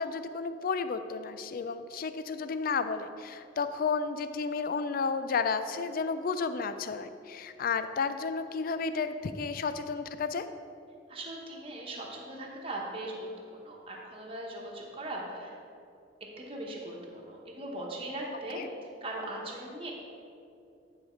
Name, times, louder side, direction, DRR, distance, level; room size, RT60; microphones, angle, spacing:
voice 1, 0.0-10.5 18.6-18.7, left 5 dB, 50° left, 11 dB, 0.4 m, -32 dB
voice 2, 11.1-15.6 16.4-18.6 19.0-19.9, right 1 dB, 30° right, -2 dB, 1.2 m, -39 dB
9.6 x 5.0 x 4.4 m, 2.6 s
head